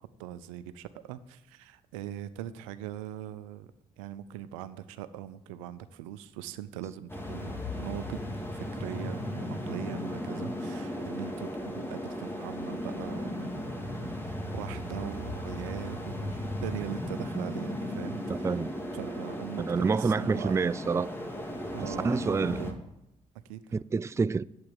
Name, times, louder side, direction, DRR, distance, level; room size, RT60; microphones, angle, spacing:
voice 1, 0.0-3.7 4.0-18.6 18.9-20.5 21.7-22.7 23.5-23.8, right 11 dB, 80° right, 0.5 m, -41 dB
sound 1, 7.1-22.7, left 1 dB, 15° left, 2.1 m, -36 dB
voice 2, 18.3-18.7 19.6-21.1 21.8-22.7 23.7-24.4, right 4 dB, 15° right, 0.3 m, -28 dB
8.6 x 7.9 x 7.4 m
hypercardioid pair, 45°, 17 cm